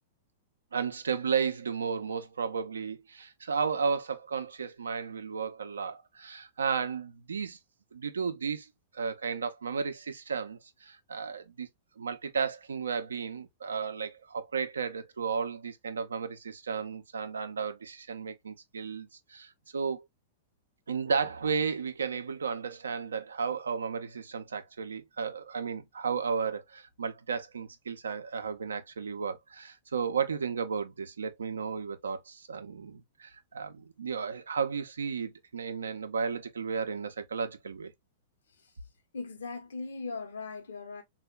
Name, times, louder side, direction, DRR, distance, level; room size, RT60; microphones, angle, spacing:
voice 1, 0.7-7.6 7.9-11.7 12.0-20.0 20.9-37.9, right 6 dB, 70° right, 0.4 m, -33 dB
voice 2, 39.1-41.0, left 4 dB, 65° left, 0.7 m, -39 dB
3.4 x 2.1 x 2.3 m
figure-of-eight pair, 100°, 0 cm